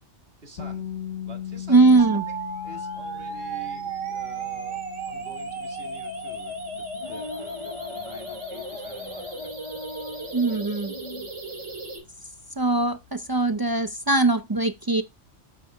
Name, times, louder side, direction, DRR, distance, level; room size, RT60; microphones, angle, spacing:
voice 1, 0.4-0.9 1.2-2.1 2.6-9.9 10.1-10.3 11.7-11.8, right 3 dB, 55° right, 2.2 m, -48 dB
sound 1, 0.6-12.4, left 10 dB, 85° left, 1.3 m, -41 dB
voice 2, 1.7-2.2 10.3-10.9 12.6-15.0, right 3 dB, 40° right, 0.3 m, -21 dB
sound 2, 2.0-12.0, right 3 dB, 85° right, 3.4 m, -35 dB
sound 3, 6.9-11.3, left 4 dB, 45° left, 0.4 m, -42 dB
7.8 x 5.9 x 3.3 m
omnidirectional pair, 1.2 m